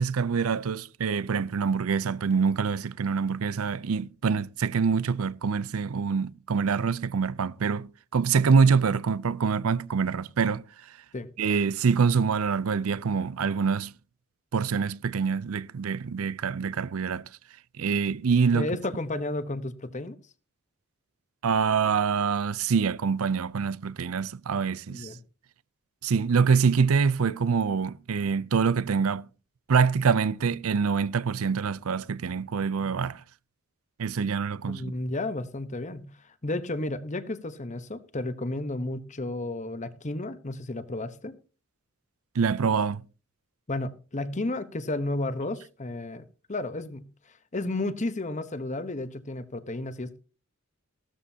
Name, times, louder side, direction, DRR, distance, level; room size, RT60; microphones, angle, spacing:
voice 1, 0.0-10.6 11.4-13.9 14.5-17.3 17.8-18.7 21.4-25.1 26.0-29.2 29.7-33.2 34.0-34.9 42.3-43.0, right 5 dB, 75° right, 0.5 m, -25 dB
voice 2, 18.5-20.1 24.9-25.2 34.7-36.1 36.4-41.4 43.7-46.2 46.5-47.0 47.5-50.2, left 2 dB, 35° left, 1.0 m, -32 dB
15.5 x 13.0 x 2.8 m
head